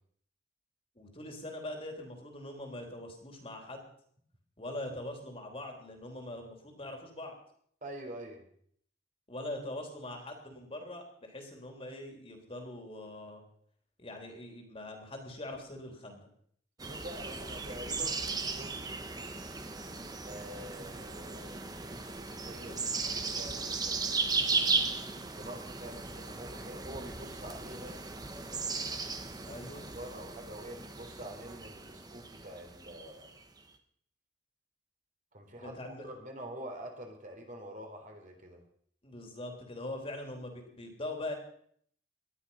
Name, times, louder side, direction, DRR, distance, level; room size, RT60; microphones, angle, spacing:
voice 1, 0.9-3.9 4.6-7.4 9.3-13.4 14.0-16.3 29.4-29.9 35.6-36.1 39.0-41.4, left 1 dB, 30° left, 3 dB, 3.3 m, -42 dB
voice 2, 7.8-8.4 16.8-18.8 20.2-24.3 25.4-28.0 29.5-33.3 35.3-38.6, right 1 dB, 45° right, 3 dB, 3.6 m, -46 dB
sound 1, 16.8-33.6, right 4 dB, 20° right, 1.3 m, -36 dB
19.0 x 12.5 x 5.6 m, 0.62 s
head